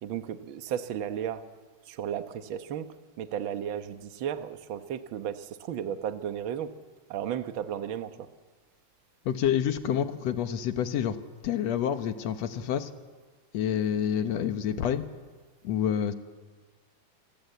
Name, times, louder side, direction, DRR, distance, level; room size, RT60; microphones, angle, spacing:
voice 1, 0.0-1.4 1.9-2.9 3.2-6.7 7.1-8.3, right 9 dB, 65° right, 9 dB, 1.2 m, -34 dB
voice 2, 9.3-11.2 11.4-12.9 13.5-15.0 15.6-16.1, left 9 dB, 65° left, 9 dB, 2.0 m, -28 dB
27.5 x 20.0 x 8.0 m, 1.5 s
omnidirectional pair, 3.7 m